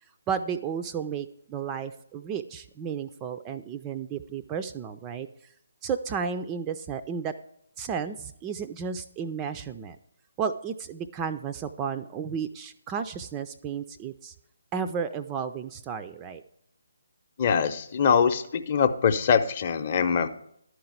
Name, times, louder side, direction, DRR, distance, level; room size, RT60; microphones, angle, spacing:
voice 1, 0.3-5.3 5.8-7.3 7.8-10.0 10.4-14.3 14.7-16.4, right 6 dB, 15° right, 8 dB, 0.4 m, -33 dB
voice 2, 17.4-20.3, left 6 dB, 35° left, 8 dB, 0.7 m, -23 dB
11.5 x 4.7 x 7.9 m, 0.71 s
figure-of-eight pair, 140°, 0 cm